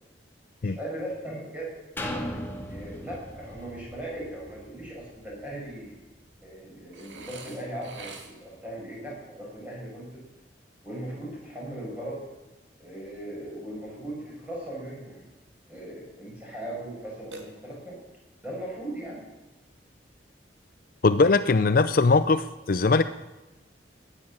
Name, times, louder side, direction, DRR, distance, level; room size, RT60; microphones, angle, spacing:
voice 1, 0.6-1.7 2.7-6.0 6.4-10.2 10.8-12.2 12.8-15.3 15.7-18.0 18.4-19.2, right 1 dB, 10° right, -5 dB, 7.2 m, -38 dB
sound 1, 2.0-5.7 6.3-6.4, left 1 dB, 10° left, 1.9 m, -38 dB
Burping eructation, 6.9-8.6 17.3-18.1, right 3 dB, 75° right, 2.3 m, -45 dB
voice 2, 21.0-23.0, left 3 dB, 50° left, 12 dB, 0.5 m, -20 dB
17.5 x 10.0 x 7.5 m, 1.1 s
head